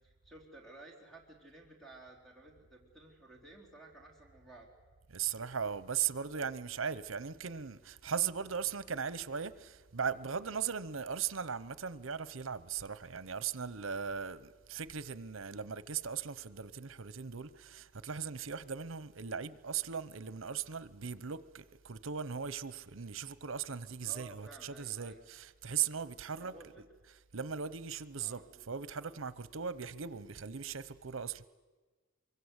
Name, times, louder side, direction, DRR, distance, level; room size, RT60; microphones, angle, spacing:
voice 1, 0.0-4.7 24.0-25.3 26.4-26.8 28.2-28.7, right 2 dB, ahead, 3.7 m, -54 dB
voice 2, 5.1-26.5 27.3-31.5, right 7 dB, 75° right, 0.9 m, -38 dB
24.5 x 23.5 x 8.2 m
head